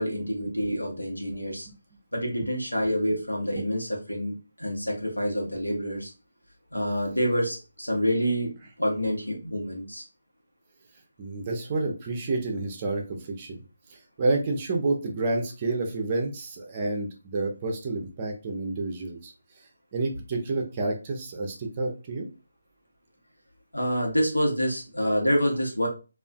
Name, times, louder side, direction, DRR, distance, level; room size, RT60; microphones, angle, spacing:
voice 1, 0.0-1.7 2.1-6.1 6.7-10.0 23.7-25.9, equal, 80° left, -1 dB, 1.0 m, -27 dB
voice 2, 11.2-13.6 13.9-19.3 19.9-22.3, right 2 dB, 25° right, 1 dB, 0.5 m, -29 dB
2.4 x 2.4 x 2.3 m, 0.31 s
figure-of-eight pair, 150°, 0 cm